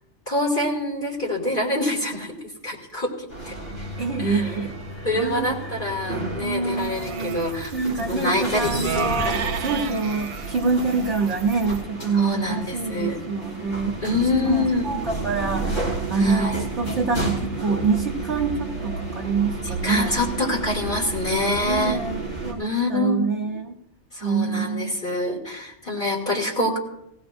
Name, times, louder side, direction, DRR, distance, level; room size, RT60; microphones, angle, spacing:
voice 1, 0.3-2.4 2.6-3.5 4.2-4.5 5.0-7.7 8.1-8.7 9.0-9.5 9.9-10.1 12.1-13.2 14.0-14.9 16.2-16.6 19.6-22.0 22.6-23.3 24.1-26.8, left 2 dB, 40° left, -2 dB, 2.5 m, -26 dB
sound 1, 3.3-22.5, right 2 dB, 65° left, 3.8 m, -31 dB
voice 2, 4.0-5.7 6.4-7.4 7.7-13.9 14.4-20.2 21.6-23.8 24.2-25.0, right 4 dB, 55° right, -1 dB, 1.3 m, -26 dB
sound 2, 6.8-11.8, right 7 dB, 80° right, 1.1 m, -33 dB
19.0 x 15.5 x 2.6 m, 0.82 s
omnidirectional pair, 1.4 m